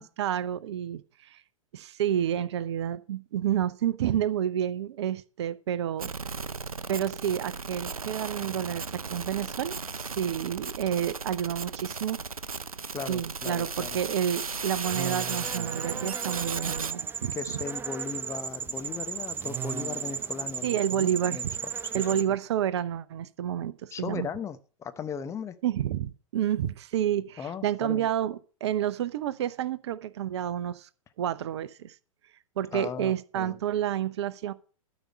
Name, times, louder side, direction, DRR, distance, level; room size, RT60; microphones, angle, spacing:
voice 1, 0.0-1.4 1.7-6.1 6.9-12.2 13.1-17.6 20.6-21.6 21.9-24.3 25.6-30.9 31.2-31.9 32.6-34.5, right 10 dB, 50° right, 0.7 m, -30 dB
sound 1, 6.0-16.9, right 4 dB, 85° right, 0.5 m, -36 dB
voice 2, 12.9-14.0 17.3-21.5 21.9-22.0 23.9-25.5 27.4-28.1 32.7-33.6, left 6 dB, 15° left, 0.8 m, -37 dB
sound 2, 14.8-22.2, right 7 dB, 10° right, 0.4 m, -35 dB
12.5 x 5.1 x 7.4 m
figure-of-eight pair, 105°, 18 cm